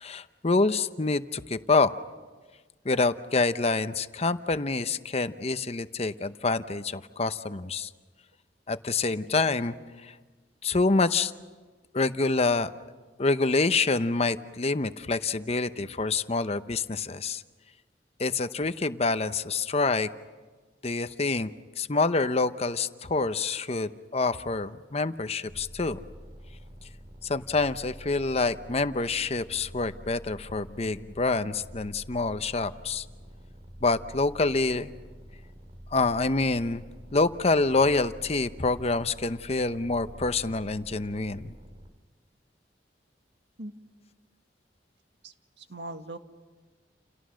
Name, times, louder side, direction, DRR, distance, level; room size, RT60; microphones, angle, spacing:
voice 1, 0.0-1.9 2.8-7.9 8.7-9.7 10.0-10.1 10.6-11.3 11.9-12.7 13.2-17.4 18.2-20.1 20.8-21.5 21.8-26.0 27.3-33.0 33.8-34.9 35.9-36.8 37.1-41.5, left 3 dB, 35° left, 11 dB, 0.8 m, -27 dB
sound 1, 25.5-41.9, equal, 35° right, 2.8 m, -47 dB
voice 2, 45.2-46.2, right 2 dB, 80° right, 7 dB, 1.7 m, -40 dB
29.5 x 29.5 x 6.4 m, 1.4 s
head